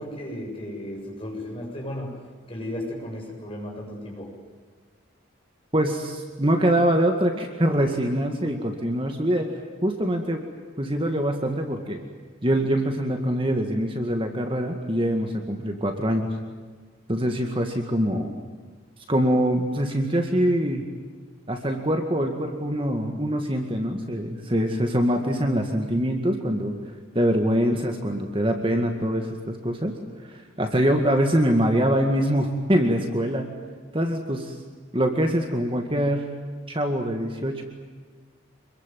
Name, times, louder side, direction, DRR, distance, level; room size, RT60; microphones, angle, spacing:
voice 1, 0.0-4.3, left 1 dB, 25° left, -1 dB, 7.6 m, -35 dB
voice 2, 5.7-9.5 9.8-10.4 10.8-12.0 12.4-16.3 17.1-18.3 19.1-20.9 21.5-26.7 27.1-29.9 30.2-33.5 33.9-34.5 34.9-36.3 36.7-37.6, equal, 25° right, 4 dB, 2.1 m, -24 dB
26.5 x 22.5 x 9.3 m, 1.5 s
head